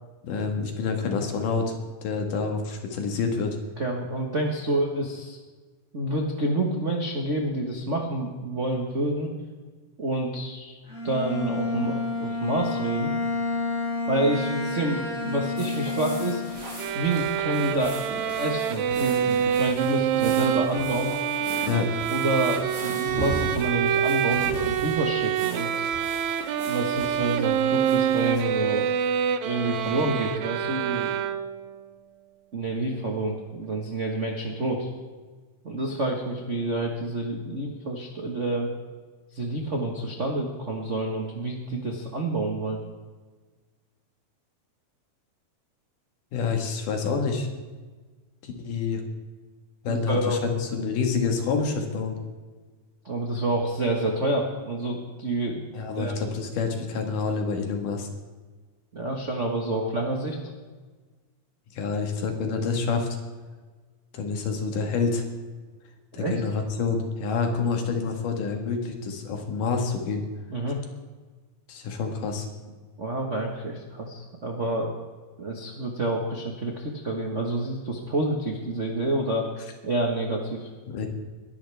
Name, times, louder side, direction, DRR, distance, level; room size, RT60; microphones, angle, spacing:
voice 1, 0.2-1.7 2.0-3.6 21.7-21.9 46.3-47.5 48.4-49.0 49.8-52.2 55.7-58.1 61.7-63.1 64.1-65.2 66.1-70.2 71.7-72.5 80.9-81.1, left 5 dB, 75° left, 3 dB, 3.2 m, -27 dB
voice 2, 3.8-5.4 5.9-9.3 10.0-10.8 11.0-13.1 14.1-16.6 16.9-18.0 18.4-21.1 22.1-25.9 26.7-28.9 29.4-31.1 32.5-34.9 35.6-38.7 39.3-42.8 49.9-50.4 53.0-55.7 56.0-56.1 58.9-60.4 66.1-66.4 70.5-70.8 73.0-74.9 75.4-79.5 79.8-80.7, right 1 dB, 60° right, 0 dB, 0.7 m, -28 dB
Bowed string instrument, 10.9-16.9, left 3 dB, 20° left, 5.1 m, -30 dB
sound 1, 15.6-29.2, right 1 dB, 40° right, 5.9 m, -39 dB
sound 2, 16.8-31.7, right 9 dB, 75° right, 1.7 m, -26 dB
22.0 x 11.5 x 3.5 m, 1.4 s
omnidirectional pair, 3.8 m